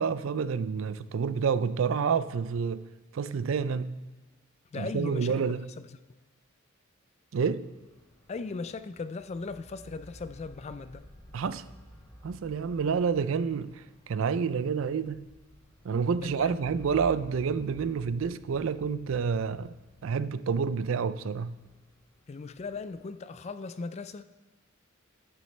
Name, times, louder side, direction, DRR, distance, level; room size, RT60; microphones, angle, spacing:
voice 1, 0.0-2.8 3.1-4.0 4.8-5.7 7.3-7.7 11.3-11.6 12.2-15.3 15.8-19.7 20.0-21.6, right 6 dB, 65° right, 0.4 m, -29 dB
voice 2, 4.7-5.4 5.8-5.9 8.3-11.0 16.2-16.7 22.3-24.2, left 4 dB, 30° left, 0.3 m, -38 dB
sound 1, 7.4-23.0, equal, 15° left, 2.4 m, -53 dB
10.5 x 10.0 x 3.2 m
head